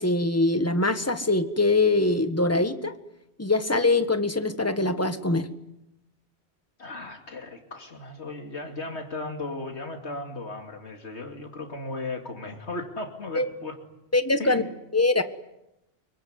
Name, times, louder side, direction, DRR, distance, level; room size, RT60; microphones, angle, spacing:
voice 1, 0.0-2.9 3.4-5.5 13.3-13.5 14.1-14.6 14.9-15.2, left 2 dB, 15° left, 9 dB, 1.6 m, -23 dB
voice 2, 6.8-13.7 14.4-14.8, left 2 dB, 85° left, 3 dB, 3.0 m, -36 dB
25.5 x 23.5 x 9.6 m, 0.87 s
omnidirectional pair, 1.1 m